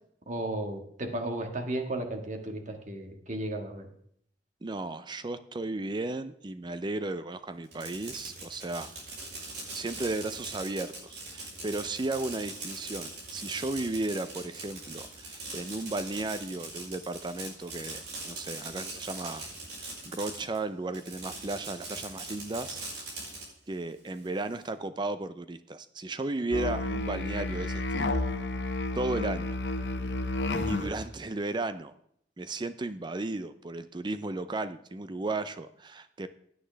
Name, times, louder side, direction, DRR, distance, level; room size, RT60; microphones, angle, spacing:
voice 1, 0.3-3.9, right 1 dB, 45° right, 5 dB, 1.7 m, -34 dB
voice 2, 4.6-8.9 9.7-19.5 19.8-23.2 23.7-28.3 28.9-29.6 30.7-31.9 32.4-36.3, right 2 dB, 25° right, 12 dB, 0.5 m, -35 dB
Fireworks, 7.6-20.6 20.9-23.4, right 3 dB, 70° right, 5.4 m, -41 dB
Musical instrument, 26.5-31.0, left 2 dB, 80° left, 1.0 m, -31 dB
16.5 x 9.5 x 3.4 m, 0.68 s
head